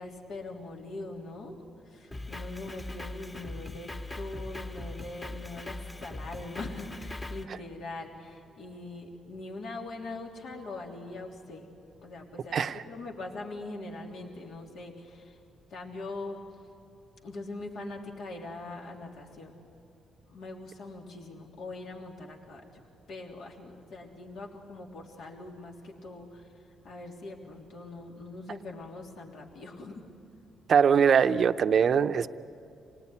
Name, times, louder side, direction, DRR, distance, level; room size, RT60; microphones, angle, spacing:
voice 1, 0.0-1.6 1.9-3.9 4.1-11.7 12.0-15.4 15.7-16.4 17.2-19.6 20.3-22.8 23.1-26.5 26.8-30.0, left 2 dB, 70° left, 0 dB, 3.2 m, -42 dB
Drum kit, 2.1-7.4, left 2 dB, 25° left, 1.8 m, -40 dB
voice 2, 12.5-12.8 30.7-32.3, right 7 dB, 55° right, 11 dB, 0.7 m, -22 dB
27.0 x 19.0 x 9.8 m, 2.8 s
cardioid pair, 90°, 0 cm